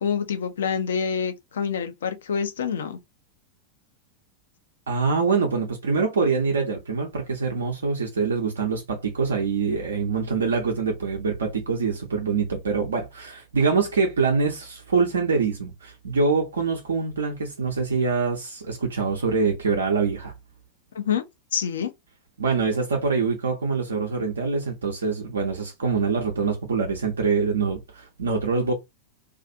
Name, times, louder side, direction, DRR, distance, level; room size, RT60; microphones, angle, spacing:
voice 1, 0.0-3.0 20.9-21.2 21.5-21.9, left 7 dB, 65° left, 0.5 m, -26 dB
voice 2, 4.9-20.3 22.4-28.7, right 4 dB, 70° right, 0.6 m, -24 dB
2.4 x 2.4 x 2.6 m
figure-of-eight pair, 90°, 0 cm